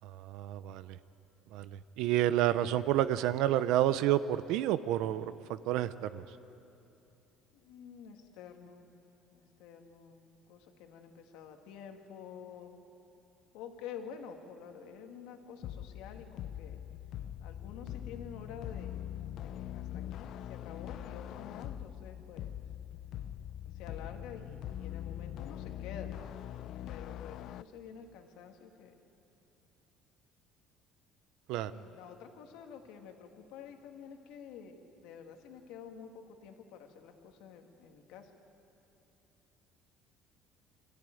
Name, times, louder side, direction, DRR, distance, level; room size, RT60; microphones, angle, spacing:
voice 1, 0.0-1.0 1.5-6.2 31.5-31.7, right 13 dB, 75° right, 14 dB, 0.6 m, -30 dB
voice 2, 7.5-8.9 9.3-12.7 13.5-16.8 17.4-19.0 19.4-22.5 23.7-26.1 26.9-28.9 31.7-38.3, left 7 dB, 80° left, 4 dB, 1.9 m, -49 dB
sound 1, 15.6-27.6, left 11 dB, 50° left, 0.4 m, -42 dB
24.0 x 14.0 x 9.2 m, 2.9 s
cardioid pair, 165°, 0 cm